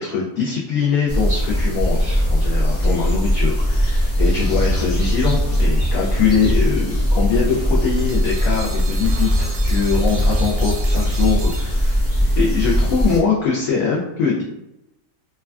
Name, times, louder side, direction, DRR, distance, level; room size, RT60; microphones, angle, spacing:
voice 1, 0.0-12.1 12.4-14.4, left 5 dB, 75° left, -4 dB, 0.8 m, -22 dB
sound 1, 1.1-13.2, equal, 20° left, 0.4 m, -19 dB
sound 2, 8.0-12.3, right 5 dB, 70° right, 0.8 m, -37 dB
3.3 x 2.3 x 2.2 m, 0.90 s
omnidirectional pair, 1.8 m